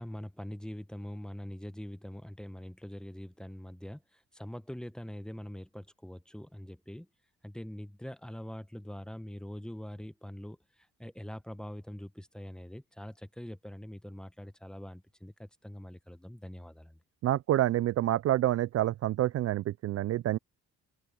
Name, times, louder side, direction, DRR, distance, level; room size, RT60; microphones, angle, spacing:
voice 1, 0.0-7.1 7.4-17.0, equal, 5° left, 1.1 m, -43 dB
voice 2, 17.2-20.4, right 13 dB, 55° right, 0.4 m, -27 dB
open air
cardioid pair, 90°, 30 cm